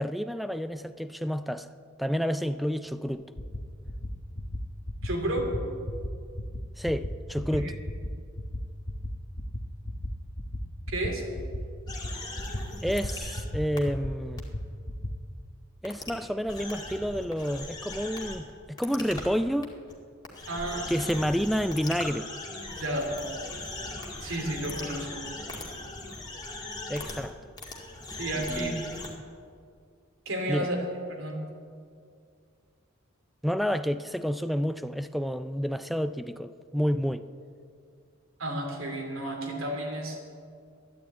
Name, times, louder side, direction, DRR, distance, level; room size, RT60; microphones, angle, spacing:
voice 1, 0.0-1.7 2.0-3.2 6.8-7.7 12.8-14.4 15.8-19.7 20.9-22.3 26.9-27.4 28.2-28.8 30.5-30.7 33.4-37.2, equal, ahead, 11 dB, 0.3 m, -29 dB
sound 1, 3.1-3.2 3.4-3.6 3.9-4.1 4.4-4.6 4.9-5.1 5.4-5.6 5.9-6.1 6.4-6.6 6.9-7.1 7.4-7.6 7.9-8.1 8.4-8.6 8.9-9.1 9.4-9.6 9.9-10.1 10.4-10.6 10.9-11.1 11.4-11.6 11.9-12.1 12.4-12.6 12.9-13.1 13.4-13.6 13.9-14.1 14.4-14.6 14.9-15.1, left 1 dB, 45° left, 1.1 m, -34 dB
voice 2, 5.0-5.5 7.6-7.7 10.9-11.2 20.5-20.9 22.8-23.1 24.2-25.2 28.2-28.8 30.3-30.8 31.1-31.4 38.4-40.2, right 1 dB, 85° right, 1 dB, 2.9 m, -32 dB
sound 2, 11.9-13.4 13.8-13.9 14.4-14.5 15.8-16.1 16.5-18.4 18.8-19.3 19.6-19.9 20.2-27.3 27.6-29.1, left 2 dB, 20° left, 2.0 m, -39 dB
12.5 x 10.5 x 8.6 m, 2.3 s
head